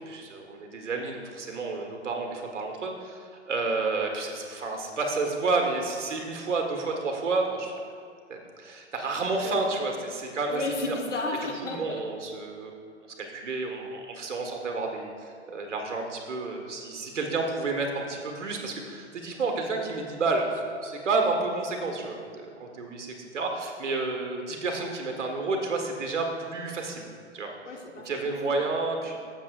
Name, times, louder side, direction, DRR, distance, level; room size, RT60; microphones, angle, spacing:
voice 1, 0.0-7.7 8.3-10.6 10.9-11.0 11.6-12.8 13.2-27.0 27.3-27.5 28.0-29.2, right 3 dB, 75° right, 2 dB, 1.7 m, -30 dB
voice 2, 10.5-12.0 27.6-28.7, left 2 dB, 75° left, 1 dB, 1.4 m, -33 dB
15.0 x 7.2 x 2.5 m, 2.2 s
hypercardioid pair, 125°, 36 cm